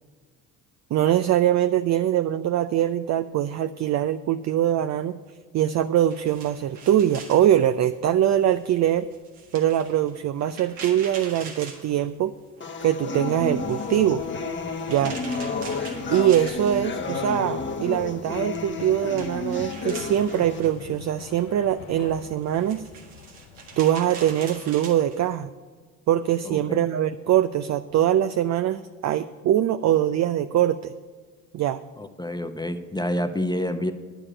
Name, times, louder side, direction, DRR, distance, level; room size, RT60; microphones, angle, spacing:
voice 1, 0.9-5.2 5.5-9.1 9.5-12.3 12.8-14.2 14.9-15.2 16.1-22.8 23.8-25.5 26.1-30.9 31.5-31.8, right 11 dB, 40° right, 11 dB, 0.5 m, -23 dB
sound 1, 6.1-12.6 12.9-17.3 17.6-25.2, right 4 dB, 85° right, 1.8 m, -43 dB
sound 2, 12.6-20.6, left 4 dB, 25° left, 1.1 m, -31 dB
sound 3, 13.4-23.8, left 8 dB, 85° left, 0.8 m, -44 dB
voice 2, 26.4-26.8 32.0-33.9, left 1 dB, 10° left, 7 dB, 0.8 m, -28 dB
9.7 x 6.9 x 8.8 m, 1.5 s
hypercardioid pair, 60°, 43 cm